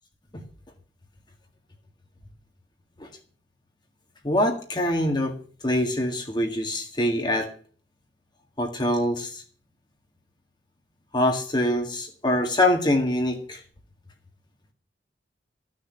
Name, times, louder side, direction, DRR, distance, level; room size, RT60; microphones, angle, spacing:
voice 1, 4.2-5.3 5.6-7.5 8.6-9.4 11.1-13.6, left 1 dB, 25° left, 1.8 m, -24 dB
14.5 x 6.6 x 8.9 m
head